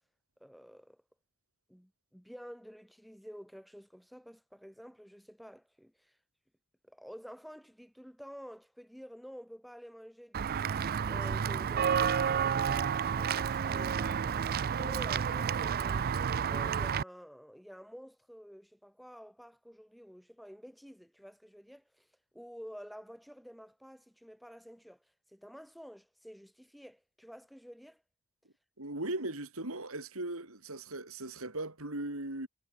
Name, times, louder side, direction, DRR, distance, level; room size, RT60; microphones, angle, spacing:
voice 1, 0.4-1.0 1.7-6.1 6.8-10.8 11.1-16.1 16.5-22.1 22.3-25.0 25.3-28.0, equal, ahead, 5.2 m, -50 dB
Walk footsteps / Bell, 10.3-17.0, right 7 dB, 45° right, 0.4 m, -30 dB
voice 2, 28.8-32.5, right 2 dB, 80° right, 5.2 m, -38 dB
head